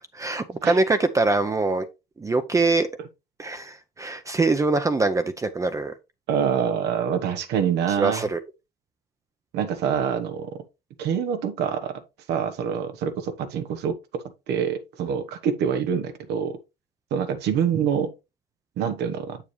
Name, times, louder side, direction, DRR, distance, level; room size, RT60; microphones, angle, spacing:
voice 1, 0.1-1.9 2.2-2.9 3.4-5.9 7.9-8.4, right 3 dB, 20° right, 0.7 m, -23 dB
voice 2, 6.3-8.2 9.5-10.6 11.0-12.0 12.3-16.6 17.1-18.1 18.8-19.4, right 7 dB, 80° right, 1.1 m, -26 dB
7.2 x 7.2 x 3.1 m
cardioid pair, 110°, 17 cm